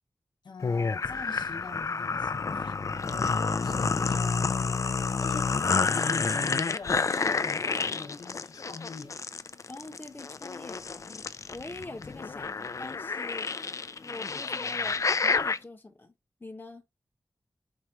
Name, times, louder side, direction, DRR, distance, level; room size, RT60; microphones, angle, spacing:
voice 1, 0.4-9.2, left 4 dB, 90° left, 0.8 m, -44 dB
sound 1, 0.6-15.6, left 4 dB, 45° left, 0.3 m, -29 dB
voice 2, 9.7-11.1 11.5-13.5 14.0-16.1 16.4-16.8, left 2 dB, 25° left, 0.8 m, -44 dB
4.5 x 2.4 x 4.3 m
wide cardioid pair, 90°, 7 cm